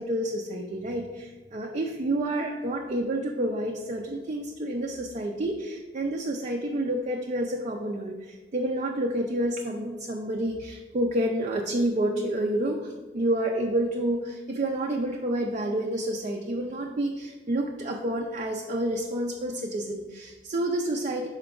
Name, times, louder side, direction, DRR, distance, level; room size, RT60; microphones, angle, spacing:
voice 1, 0.0-21.3, right 1 dB, 40° right, 1 dB, 0.4 m, -29 dB
5.7 x 4.4 x 3.8 m, 1.2 s
head